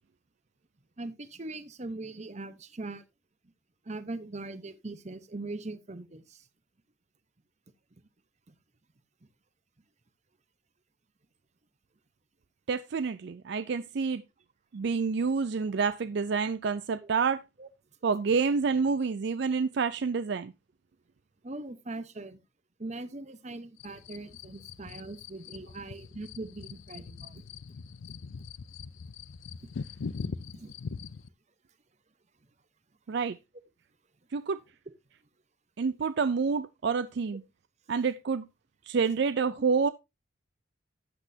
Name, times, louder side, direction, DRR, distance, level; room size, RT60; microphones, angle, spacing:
voice 1, 1.0-3.0 3.8-6.4 17.0-17.1 17.6-17.7 19.0-19.1 21.4-22.4 22.8-27.4 30.5-30.7, right 2 dB, 35° right, 0.9 m, -41 dB
voice 2, 12.7-14.2 14.7-17.4 18.0-20.5 33.1-33.4 34.3-34.6 35.8-37.4 37.9-38.4 38.9-39.9, right 5 dB, 60° right, 0.4 m, -28 dB
sound 1, 23.8-31.3, left 5 dB, 80° left, 0.5 m, -42 dB
12.0 x 8.2 x 2.7 m
head